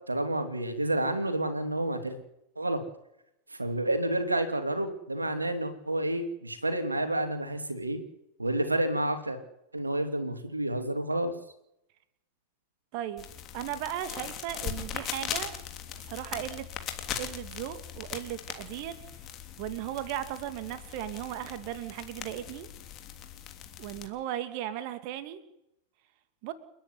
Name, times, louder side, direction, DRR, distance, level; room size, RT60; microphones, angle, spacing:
voice 1, 0.1-2.2 2.6-2.8 3.5-8.0 8.4-9.4 9.7-11.3, right 1 dB, 80° right, 7 dB, 2.8 m, -29 dB
voice 2, 12.9-13.3 13.5-15.5 15.9-16.7 17.2-19.0 19.6-22.7 23.8-25.4 26.4-26.5, right 12 dB, 45° right, 10 dB, 2.6 m, -36 dB
sound 1, 13.2-24.1, left 10 dB, 35° left, 3.2 m, -40 dB
30.0 x 10.5 x 9.6 m, 0.82 s
figure-of-eight pair, 90°, 0 cm